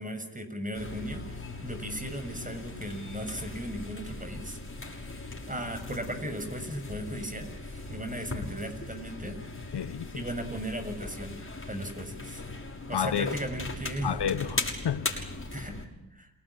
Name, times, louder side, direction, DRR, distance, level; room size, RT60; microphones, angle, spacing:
voice 1, 0.0-9.4 10.1-12.4 12.9-14.2 14.5-14.6 15.5-16.3, right 1 dB, 15° right, 6.8 m, -37 dB
sound 1, 0.7-15.9, left 3 dB, 25° left, 6.3 m, -39 dB
voice 2, 9.7-10.2 12.9-13.4 14.0-15.3, left 8 dB, 60° left, 1.2 m, -31 dB
29.0 x 19.0 x 10.0 m
cardioid pair, 55°, 45 cm